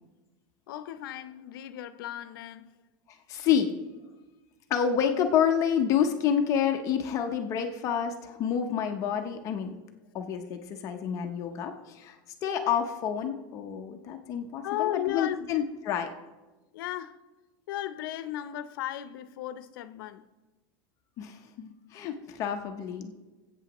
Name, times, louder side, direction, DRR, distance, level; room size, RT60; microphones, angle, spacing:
voice 1, 0.7-2.8 14.6-15.5 16.7-17.2 17.7-20.3, left 13 dB, 85° left, 0.6 m, -35 dB
voice 2, 3.1-3.7 4.7-9.7 10.1-16.1 21.2-23.1, left 8 dB, 30° left, 0.7 m, -28 dB
20.0 x 8.4 x 3.0 m
supercardioid pair, 180°, 11 cm